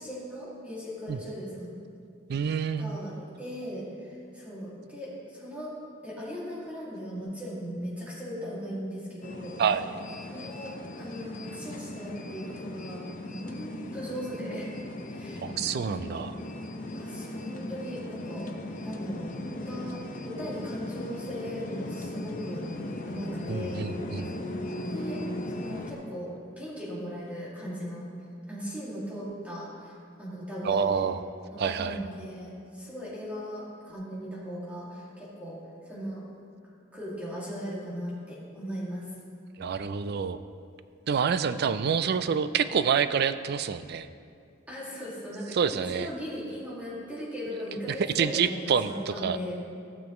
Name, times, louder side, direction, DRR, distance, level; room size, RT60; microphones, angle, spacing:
voice 1, 0.0-1.7 2.8-5.7 6.0-9.6 10.3-14.7 15.1-15.5 16.9-18.5 18.8-22.8 23.0-23.8 24.2-24.5 24.9-25.2 25.5-28.1 28.5-31.1 31.5-36.2 36.9-39.1 44.7-49.6, equal, 5° right, -8 dB, 2.3 m, -38 dB
voice 2, 2.3-3.0 9.6-9.9 15.4-16.4 23.5-24.3 30.6-31.2 31.6-32.0 39.6-40.4 41.1-44.1 45.5-46.1 47.9-49.4, right 6 dB, 55° right, 12 dB, 0.3 m, -27 dB
sound 1, 9.2-25.9, left 1 dB, 40° left, 0.6 m, -38 dB
15.0 x 6.9 x 3.1 m, 2.4 s
head